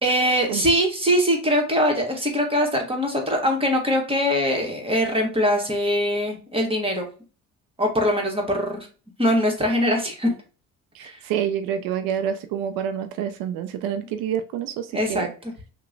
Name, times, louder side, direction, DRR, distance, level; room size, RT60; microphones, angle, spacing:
voice 1, 0.0-7.1 7.8-8.9 9.2-10.4 11.0-11.2 14.9-15.3, equal, 15° right, 2 dB, 1.2 m, -22 dB
voice 2, 10.9-15.3, right 9 dB, 80° right, 8 dB, 0.5 m, -27 dB
2.9 x 2.2 x 3.8 m, 0.36 s
supercardioid pair, 80°, 34 cm